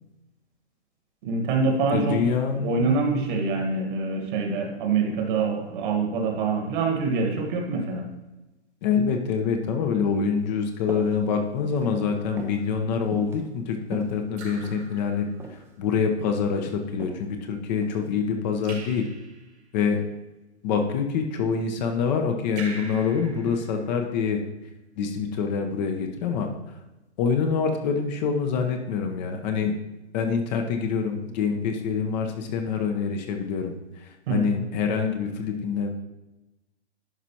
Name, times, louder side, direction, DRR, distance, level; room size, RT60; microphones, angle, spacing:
voice 1, 1.2-2.2 2.6-8.1 34.3-34.6, right 4 dB, 45° right, 3 dB, 1.5 m, -25 dB
voice 2, 1.9-2.9 8.8-19.1 19.7-20.0 20.6-24.4 25.0-26.5 27.2-29.7 30.1-35.9, left 6 dB, 40° left, 4 dB, 0.9 m, -26 dB
sound 1, 10.8-11.2 11.5-11.9 12.4-12.6 13.1-13.4 13.8-14.9 15.4-15.6 16.0-16.4 17.0-17.2 17.8-18.1, right 3 dB, 5° right, 0.6 m, -37 dB
Raindrop / Drip, 12.6-13.0 14.4-15.7 18.6-19.7 22.6-24.3, right 3 dB, 75° right, 2.3 m, -43 dB
11.0 x 5.0 x 2.9 m, 1.0 s
hypercardioid pair, 125°, 34 cm